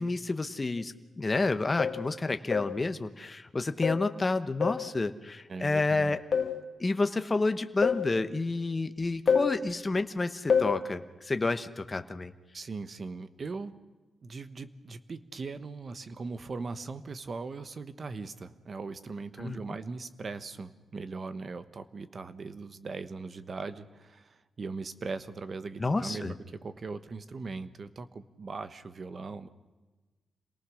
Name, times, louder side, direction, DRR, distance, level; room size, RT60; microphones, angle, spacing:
voice 1, 0.0-6.2 6.8-12.3 19.4-19.6 25.8-26.3, left 3 dB, 25° left, 9 dB, 1.0 m, -30 dB
sound 1, 0.8-0.9 1.8-2.1 2.5-2.8 3.8-4.1 4.6-4.9 6.3-6.6 7.8-8.1 9.3-9.6 10.5-10.8, left 6 dB, 45° left, 1.9 m, -27 dB
voice 2, 5.5-6.2 12.5-13.7 14.2-29.5, right 4 dB, 40° right, 11 dB, 1.1 m, -39 dB
27.5 x 18.5 x 6.4 m, 1.2 s
wide cardioid pair, 145°, 0 cm